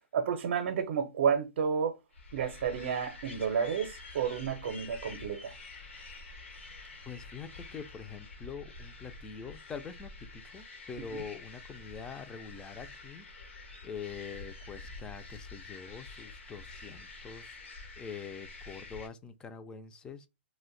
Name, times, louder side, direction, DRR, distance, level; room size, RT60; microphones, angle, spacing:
voice 1, 0.1-2.0 2.3-5.6 11.1-11.2, right 7 dB, 60° right, 0.6 m, -31 dB
sound 1, 2.1-19.1, left 3 dB, 80° left, 1.0 m, -48 dB
voice 2, 7.1-20.3, left 6 dB, 10° left, 0.3 m, -45 dB
2.5 x 2.1 x 3.7 m
hypercardioid pair, 135°, 7 cm